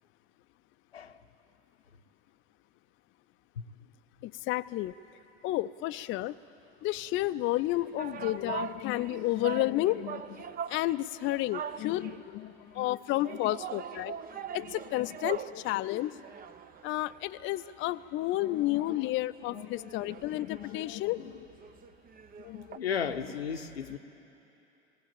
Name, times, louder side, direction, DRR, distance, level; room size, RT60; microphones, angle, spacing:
voice 1, 4.2-4.9 5.4-6.4 6.8-14.1 14.5-16.2 16.8-21.5 22.4-22.8, left 16 dB, 40° left, 12 dB, 0.5 m, -31 dB
sound 1, 7.5-12.4 13.2-15.6 16.0-17.9 18.2-18.3 18.6-22.8, right 8 dB, 30° right, 0.6 m, -42 dB
voice 2, 22.8-24.0, left 7 dB, 90° left, 7 dB, 0.8 m, -33 dB
18.5 x 18.5 x 8.8 m, 3.0 s
hypercardioid pair, 70°, 30 cm